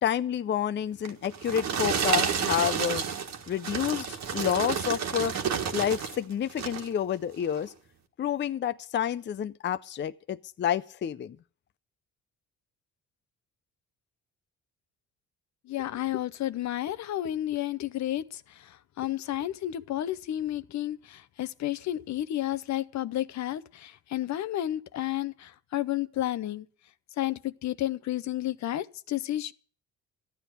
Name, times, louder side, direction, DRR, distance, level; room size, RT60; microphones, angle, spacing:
voice 1, 0.0-3.0 3.5-5.3 5.7-7.7 8.2-11.4, left 9 dB, 40° left, 0.5 m, -29 dB
sound 1, 1.1-6.2 6.5-6.9 7.5-7.6, right 7 dB, 60° right, 1.6 m, -30 dB
voice 2, 15.7-26.7 27.2-29.5, left 13 dB, 65° left, 0.7 m, -31 dB
13.5 x 9.2 x 6.7 m
cardioid pair, 90°, 30 cm